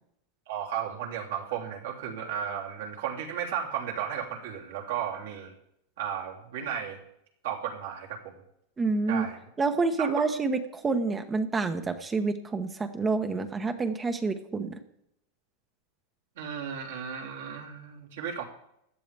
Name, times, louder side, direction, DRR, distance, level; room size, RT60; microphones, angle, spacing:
voice 1, 0.5-5.5 6.0-7.0 7.4-8.4 9.1-9.4 10.0-10.1 16.4-18.4, right 8 dB, 75° right, -1 dB, 3.3 m, -34 dB
voice 2, 8.8-9.3 9.6-14.8, right 4 dB, 20° right, 6 dB, 1.1 m, -28 dB
16.0 x 11.0 x 3.5 m, 0.76 s
hypercardioid pair, 105°, 0 cm